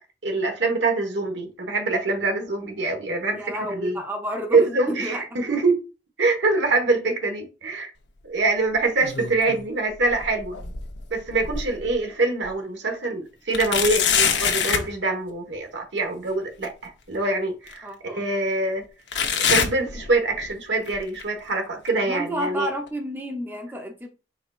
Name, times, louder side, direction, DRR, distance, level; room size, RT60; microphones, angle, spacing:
voice 1, 0.2-4.0 4.5-5.8 6.2-7.9 8.2-10.6 11.1-18.8 19.4-22.7, right 3 dB, 85° right, 1.3 m, -24 dB
voice 2, 3.3-5.4 17.8-18.2 22.0-24.1, equal, 10° right, 0.6 m, -31 dB
sound 1, 8.8-9.7 10.1-12.0 12.5-12.6 13.5-14.9 16.6-16.7 17.7-17.8 19.1-20.5 20.9-21.2 21.9-22.0 22.9-23.0, left 7 dB, 80° left, 0.9 m, -25 dB
4.7 x 4.2 x 2.4 m
head